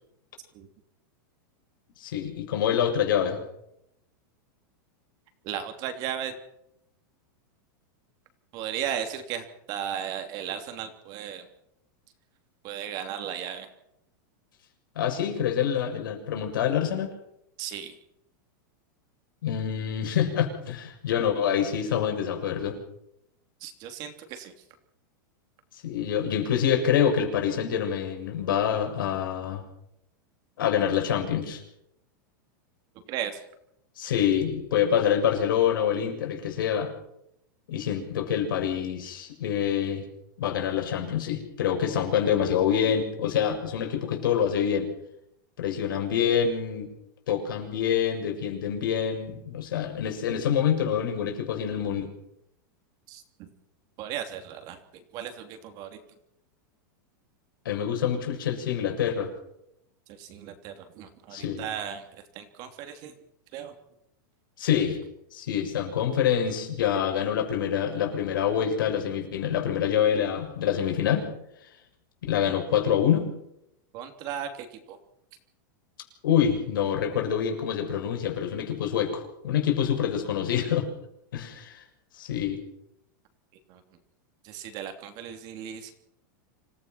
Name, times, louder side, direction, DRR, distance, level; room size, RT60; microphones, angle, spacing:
voice 1, 2.0-3.4 14.9-17.1 19.4-22.8 25.8-29.6 30.6-31.6 34.0-36.9 37.7-40.0 40.4-44.9 45.6-46.9 47.3-52.1 57.6-59.3 61.3-61.6 64.6-65.0 65.3-71.3 72.3-73.3 76.2-80.9 81.3-81.8 82.1-82.6, left 8 dB, 85° left, 3 dB, 6.7 m, -26 dB
voice 2, 5.4-6.4 8.5-11.5 12.6-13.7 17.6-17.9 23.6-24.5 33.1-33.4 53.1-53.5 54.0-54.8 55.1-56.0 60.1-62.1 62.3-63.1 63.5-63.7 73.9-75.0 83.7-83.8 84.4-85.9, right 9 dB, 40° right, 7 dB, 3.1 m, -36 dB
26.5 x 16.5 x 6.0 m, 0.78 s
supercardioid pair, 160°, 11 cm